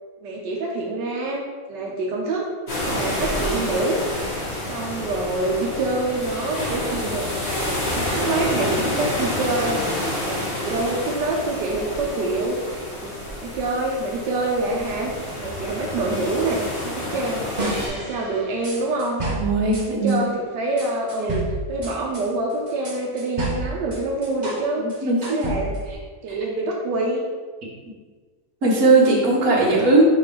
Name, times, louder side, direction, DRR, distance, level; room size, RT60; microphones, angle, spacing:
voice 1, 0.2-1.4 1.7-2.5 2.8-9.8 10.2-13.2 13.4-17.5 17.8-19.3 19.7-25.8 26.2-27.2, right 2 dB, 85° right, -1 dB, 1.4 m, -26 dB
sound 1, 2.7-17.9, left 1 dB, 40° left, 1.7 m, -28 dB
sound 2, 17.6-20.2 20.8-24.6 24.9-25.9, right 2 dB, 35° right, 0.9 m, -30 dB
voice 2, 19.3-20.2 25.0-25.5 28.6-30.0, right 3 dB, 60° right, -3 dB, 1.7 m, -18 dB
5.3 x 3.9 x 4.7 m, 1.5 s
omnidirectional pair, 1.8 m